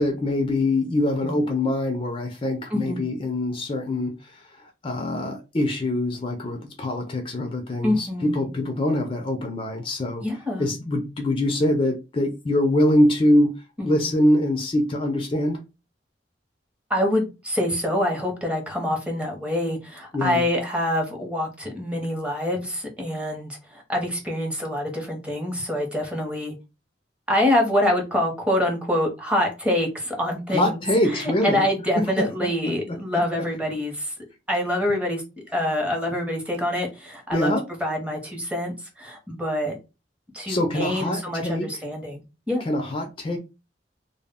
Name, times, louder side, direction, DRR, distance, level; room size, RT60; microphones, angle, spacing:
voice 1, 0.0-4.1 4.8-10.2 10.6-13.5 13.8-15.6 20.1-20.4 30.5-31.6 32.0-33.5 37.3-37.6 40.5-41.7 42.7-43.4, left 1 dB, 30° left, 0.4 m, -24 dB
voice 2, 2.7-3.0 7.8-8.5 10.2-10.7 13.8-14.1 16.9-26.5 27.3-34.1 34.5-35.2 35.5-37.5 37.8-39.8 40.3-42.6, left 1 dB, 5° right, 0.7 m, -26 dB
2.1 x 2.0 x 3.5 m
head